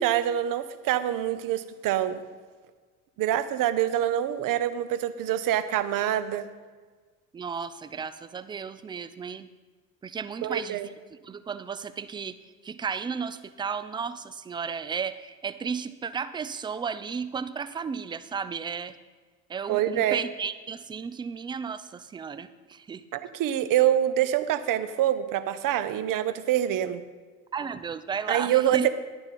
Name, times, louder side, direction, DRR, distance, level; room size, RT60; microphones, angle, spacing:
voice 1, 0.0-2.2 3.2-6.4 10.4-10.9 19.7-20.2 23.1-27.0 28.3-28.9, right 11 dB, 45° right, 13 dB, 0.9 m, -25 dB
voice 2, 7.3-9.5 10.0-10.8 11.1-12.4 12.6-19.0 19.5-23.0 27.5-28.9, right 6 dB, 10° right, 14 dB, 0.4 m, -34 dB
11.0 x 6.9 x 5.9 m, 1.5 s
figure-of-eight pair, 60°, 47 cm